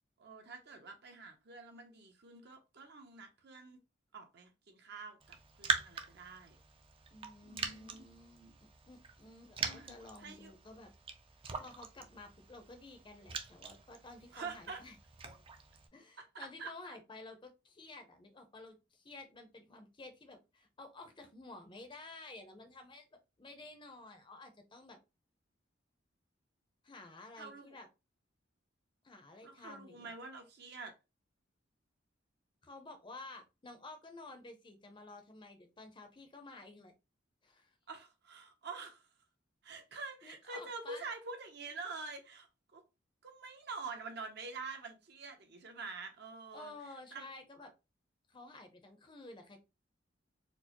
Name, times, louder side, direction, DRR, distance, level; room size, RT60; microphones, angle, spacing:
voice 1, 0.2-3.8 4.1-6.6 7.4-8.1 9.6-10.5 14.3-14.8 16.3-17.0 27.4-27.8 29.4-30.9 37.9-39.0 39.6-42.8 43.2-46.7 47.1-47.3, right 4 dB, 60° right, 0.8 m, -47 dB
Raindrop, 5.2-15.9, right 5 dB, 30° right, 0.4 m, -43 dB
voice 2, 7.1-10.9 11.6-15.0 15.9-23.1 23.4-25.0 26.8-27.9 29.0-30.2 32.6-36.9 37.4-37.7 39.9-41.1 46.5-47.7 48.3-49.6, left 2 dB, 25° left, 0.6 m, -52 dB
4.4 x 2.0 x 2.9 m
head